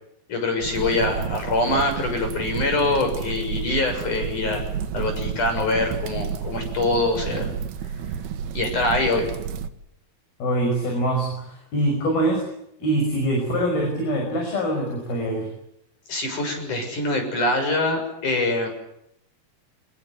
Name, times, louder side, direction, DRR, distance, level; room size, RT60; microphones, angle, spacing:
voice 1, 0.3-4.6 4.9-7.5 8.5-9.3 16.1-18.7, left 2 dB, 55° left, 4 dB, 8.2 m, -24 dB
sound 1, 0.6-9.7, right 7 dB, 90° right, 3.3 m, -31 dB
voice 2, 10.4-11.5 11.7-12.4 12.8-15.5, right 1 dB, 75° left, 2 dB, 7.6 m, -23 dB
25.0 x 20.5 x 9.4 m, 0.79 s
omnidirectional pair, 4.4 m